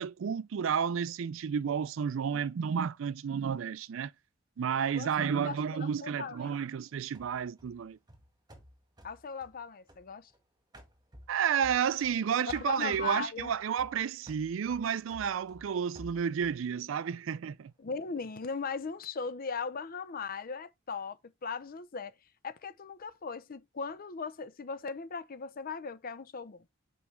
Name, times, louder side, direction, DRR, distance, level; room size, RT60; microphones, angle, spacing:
voice 1, 0.0-4.1 4.6-8.0 11.3-17.7, right 7 dB, 70° right, 0.4 m, -31 dB
voice 2, 4.9-6.6 9.0-10.3 12.5-13.5 17.8-22.1 22.4-26.6, left 5 dB, 45° left, 0.6 m, -38 dB
sound 1, 7.1-10.4 10.7-12.2 12.5-16.6, equal, 20° right, 1.6 m, -54 dB
7.1 x 4.7 x 3.2 m
head